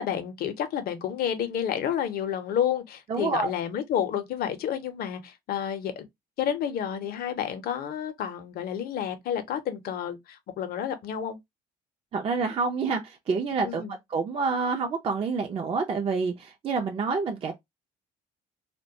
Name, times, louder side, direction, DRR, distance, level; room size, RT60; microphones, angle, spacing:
voice 1, 0.0-6.1 6.4-11.4 13.6-14.0, left 9 dB, 65° left, 0.6 m, -30 dB
voice 2, 3.1-3.5 12.1-13.8 14.1-17.5, right 4 dB, 35° right, 0.4 m, -27 dB
2.2 x 2.1 x 2.5 m
cardioid pair, 110°, 17 cm